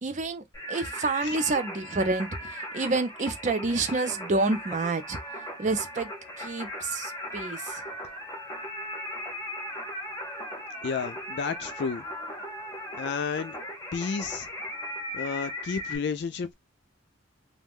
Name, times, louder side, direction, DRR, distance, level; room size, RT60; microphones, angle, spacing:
voice 1, 0.0-6.1 6.4-7.8, right 3 dB, 35° right, 0.5 m, -29 dB
Singing, 0.5-16.0, equal, 15° left, 0.7 m, -38 dB
voice 2, 10.8-12.0 13.0-13.5 13.9-14.5 15.1-16.5, left 5 dB, 55° left, 0.3 m, -31 dB
2.4 x 2.2 x 3.4 m
head